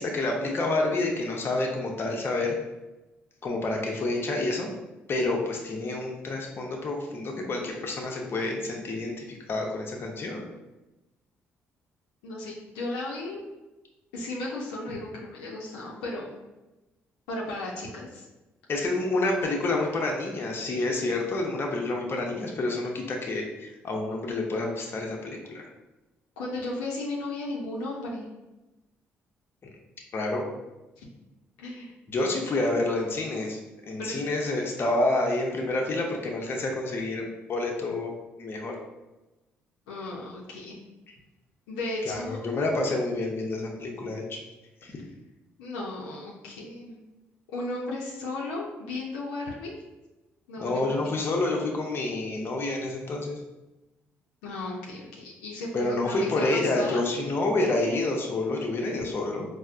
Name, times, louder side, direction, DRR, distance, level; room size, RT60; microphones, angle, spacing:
voice 1, 0.0-2.6 3.4-4.7 5.1-10.4 18.7-25.6 30.1-30.4 32.1-33.6 33.9-38.1 38.4-38.8 42.1-44.4 44.8-44.9 50.6-53.4 55.7-59.5, left 2 dB, 45° left, 0 dB, 0.6 m, -28 dB
voice 2, 12.2-13.4 14.1-16.4 17.3-18.2 26.4-28.3 31.0-31.1 31.6-31.9 34.0-34.2 39.9-40.8 41.7-42.4 45.6-47.0 47.5-49.7 50.5-51.2 54.4-57.0, left 2 dB, 90° left, -3 dB, 0.5 m, -35 dB
4.2 x 2.0 x 2.4 m, 1.1 s
hypercardioid pair, 55°, 5 cm